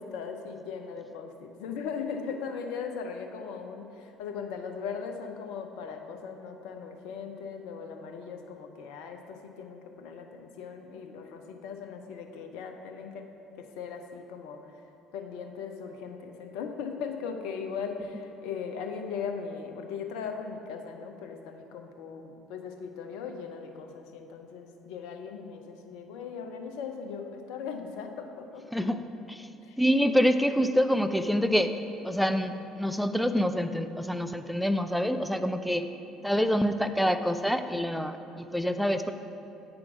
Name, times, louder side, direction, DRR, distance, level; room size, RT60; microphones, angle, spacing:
voice 1, 0.0-13.2 13.6-14.8 15.1-28.7 29.6-29.8, left 6 dB, 60° left, 5 dB, 0.6 m, -38 dB
voice 2, 28.7-29.0 29.3-29.5 29.8-31.7 32.0-35.8 36.2-39.1, equal, ahead, 9 dB, 0.4 m, -26 dB
8.6 x 6.0 x 4.9 m, 3.0 s
figure-of-eight pair, 55°, 0 cm